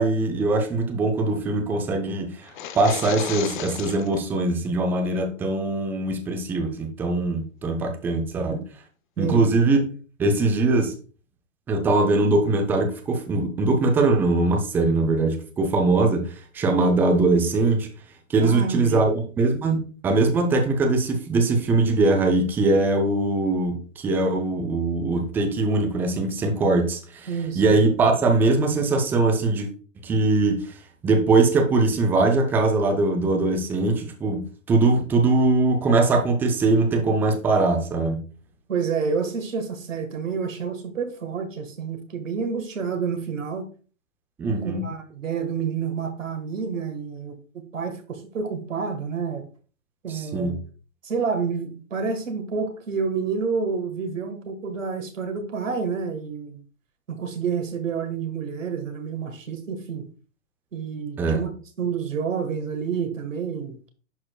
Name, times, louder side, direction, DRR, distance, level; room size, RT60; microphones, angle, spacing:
voice 1, 0.0-2.5 2.8-8.6 9.2-9.8 10.2-10.9 11.7-17.9 18.3-27.3 27.6-29.7 30.0-30.6 31.0-38.2 44.4-44.8 50.1-50.6 61.2-61.4, right 3 dB, 5° right, 0.5 m, -21 dB
sound 1, 2.4-4.2, left 10 dB, 40° left, 0.6 m, -34 dB
voice 2, 9.2-9.8 18.4-19.1 27.3-27.8 38.7-43.7 44.6-49.4 50.0-50.6 51.0-56.6 57.1-60.0 60.7-61.5 61.8-63.9, right 5 dB, 70° right, 1.6 m, -29 dB
11.0 x 4.2 x 2.3 m
hypercardioid pair, 125°, 39 cm